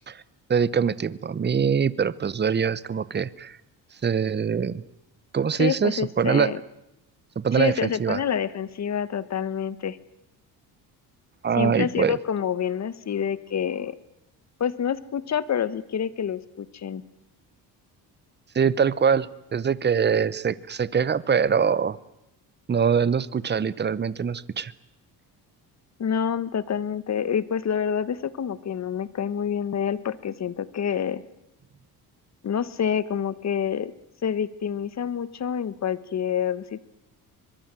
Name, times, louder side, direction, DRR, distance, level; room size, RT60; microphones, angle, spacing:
voice 1, 0.5-3.6 4.0-4.8 5.3-6.5 7.4-8.2 11.4-12.2 18.5-22.0 22.7-24.7, right 6 dB, 25° right, 19 dB, 0.9 m, -23 dB
voice 2, 5.6-6.6 7.5-10.0 11.6-14.0 14.6-17.0 26.0-31.2 32.4-33.9 34.2-36.8, left 8 dB, 40° left, 16 dB, 1.3 m, -27 dB
24.5 x 22.0 x 7.6 m, 0.89 s
cardioid pair, 95°, 39 cm